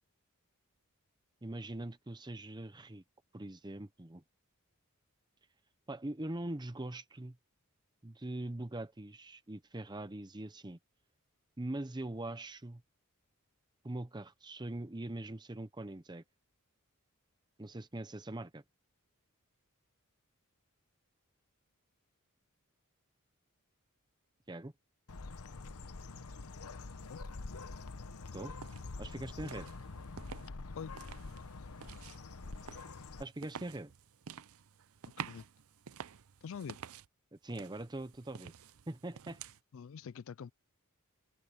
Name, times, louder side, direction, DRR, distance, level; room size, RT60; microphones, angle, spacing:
voice 1, 1.4-3.0 3.3-4.2 5.9-7.4 8.0-10.8 11.6-12.8 13.8-16.2 17.6-18.6 24.5-24.7 28.3-28.5 29.0-29.7 33.2-33.9 37.4-38.5 38.9-39.4, right 1 dB, 20° right, 0.8 m, -42 dB
Bird, 25.1-33.2, left 3 dB, 80° left, 0.9 m, -46 dB
sound 1, 28.6-28.8 29.4-30.5 30.9-37.1 37.5-39.6, right 7 dB, 70° right, 0.6 m, -50 dB
voice 2, 36.4-36.8 39.7-40.5, left 6 dB, 60° left, 0.4 m, -45 dB
head